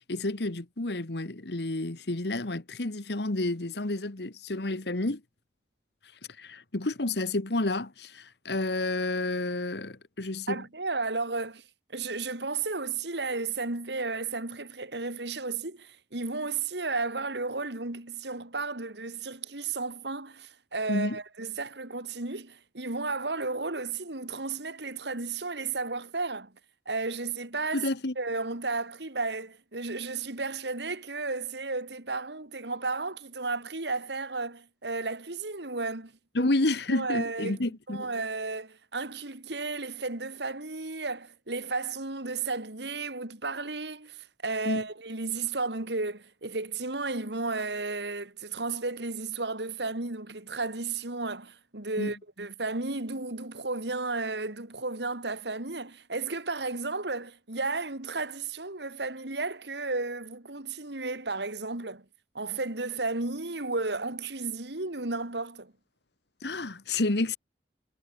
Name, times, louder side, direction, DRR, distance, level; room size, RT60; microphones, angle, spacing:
voice 1, 0.1-5.2 6.4-10.6 20.9-21.2 27.7-28.1 36.3-38.1 44.6-44.9 52.0-52.1 66.4-67.4, left 2 dB, 70° left, 1.5 m, -30 dB
voice 2, 10.5-11.6 11.9-26.5 26.9-27.8 28.2-36.1 36.4-36.5 36.9-37.6 37.9-62.0 62.3-65.7, right 3 dB, 75° right, 2.6 m, -33 dB
head